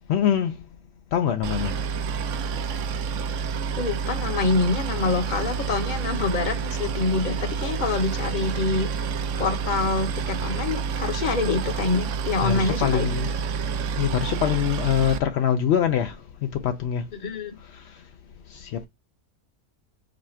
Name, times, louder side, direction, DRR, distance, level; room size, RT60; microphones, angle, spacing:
voice 1, 0.1-0.5 1.1-1.7 12.4-13.3 14.0-16.1 16.4-17.0 18.6-18.9, left 9 dB, 75° left, 0.6 m, -23 dB
Boat Water vehicle, 1.4-15.2, right 6 dB, 65° right, 0.8 m, -28 dB
voice 2, 3.8-8.9 9.4-13.1 17.2-17.6, left 3 dB, 40° left, 0.8 m, -26 dB
4.9 x 2.4 x 4.3 m
omnidirectional pair, 1.6 m